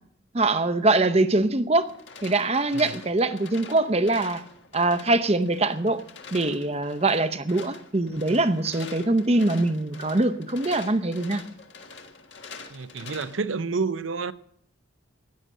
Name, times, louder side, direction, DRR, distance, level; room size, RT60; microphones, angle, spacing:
voice 1, 0.3-1.9 2.2-4.4 4.7-6.0 6.3-11.4, right 2 dB, 30° right, 0.7 m, -23 dB
sound 1, 1.8-13.4, left 5 dB, 65° left, 1.7 m, -45 dB
voice 2, 12.7-14.3, right 4 dB, 70° right, 0.7 m, -29 dB
16.0 x 10.5 x 6.6 m
head